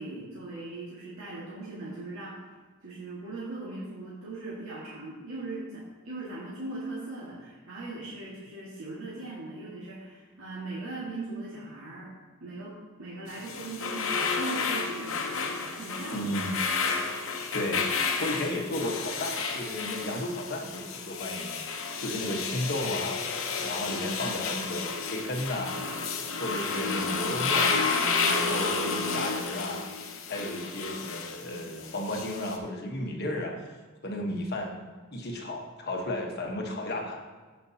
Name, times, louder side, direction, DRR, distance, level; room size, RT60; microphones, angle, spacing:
voice 1, 0.0-2.4 2.8-12.1 12.4-16.3 16.6-16.8, right 2 dB, 90° right, -7 dB, 1.9 m, -39 dB
sound 1, 13.3-32.6, left 4 dB, 70° left, 0.9 m, -31 dB
voice 2, 16.1-16.5 17.5-17.9 18.2-23.2 23.6-25.8 26.4-27.9 28.3-29.9 30.3-33.7 34.0-34.8 35.1-37.2, left 1 dB, 50° left, 1 dB, 1.2 m, -33 dB
15.0 x 5.3 x 2.8 m, 1.4 s
head